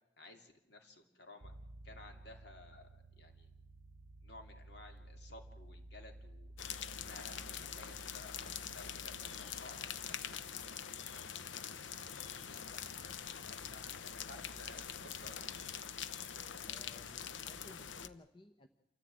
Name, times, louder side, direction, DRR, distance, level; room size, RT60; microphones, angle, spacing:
voice 1, 0.2-1.5 1.8-3.5 4.2-6.5 6.9-11.8 12.4-15.7, left 2 dB, 60° left, 5 dB, 2.9 m, -56 dB
sound 1, 1.4-18.1, right 1 dB, 45° right, 0.8 m, -57 dB
sound 2, 6.6-18.1, left 8 dB, 75° left, 0.8 m, -44 dB
voice 2, 16.7-18.7, left 2 dB, 25° left, 8 dB, 0.9 m, -58 dB
27.0 x 14.0 x 8.7 m, 0.91 s
head